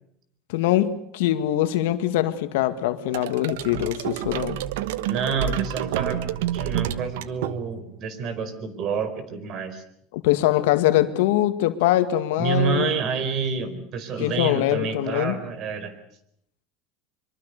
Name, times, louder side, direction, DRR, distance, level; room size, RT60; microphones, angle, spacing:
voice 1, 0.5-4.6 10.1-12.9 14.2-15.4, left 14 dB, 80° left, 10 dB, 2.1 m, -23 dB
sound 1, 3.1-8.0, right 12 dB, 85° right, 1.1 m, -29 dB
voice 2, 5.1-6.2 6.5-9.8 12.4-15.9, right 5 dB, 45° right, 12 dB, 4.5 m, -28 dB
25.0 x 23.5 x 6.8 m, 0.70 s
supercardioid pair, 130°, 0 cm